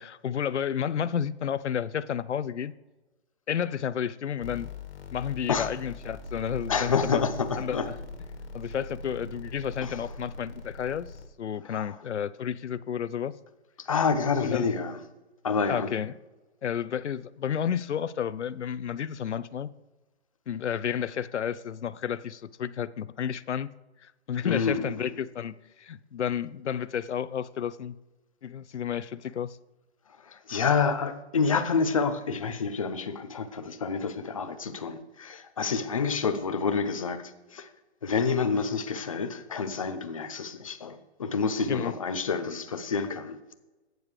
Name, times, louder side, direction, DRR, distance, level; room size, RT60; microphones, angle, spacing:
voice 1, 0.0-2.7 3.5-4.7 5.1-7.2 7.6-8.0 8.5-11.1 11.4-13.3 14.4-14.7 15.7-16.1 16.6-19.7 20.5-23.7 24.0-28.0 28.4-29.6 41.6-41.9, left 8 dB, 85° left, 0.7 m, -31 dB
sound 1, 4.4-11.3, left 2 dB, 55° left, 2.2 m, -40 dB
voice 2, 6.7-7.9 9.8-10.0 11.7-11.9 13.8-15.0 15.4-15.9 24.4-25.1 30.2-37.7 38.0-43.5, left 5 dB, 30° left, 0.7 m, -28 dB
17.0 x 9.4 x 3.3 m
hypercardioid pair, 175°, 34 cm